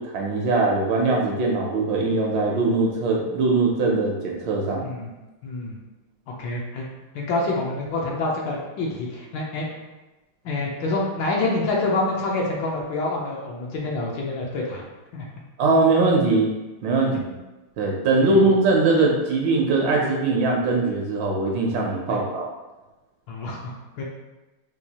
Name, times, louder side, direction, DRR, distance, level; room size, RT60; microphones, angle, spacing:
voice 1, 0.0-4.9 15.6-16.5 16.8-17.3 17.8-22.5, right 3 dB, 75° right, -1 dB, 1.2 m, -21 dB
voice 2, 5.4-5.8 6.3-6.9 7.1-9.7 10.4-14.8 15.1-15.2 22.1-22.2 23.3-24.0, left 2 dB, 70° left, -2 dB, 1.3 m, -27 dB
4.6 x 2.3 x 2.8 m, 1.1 s
omnidirectional pair, 2.3 m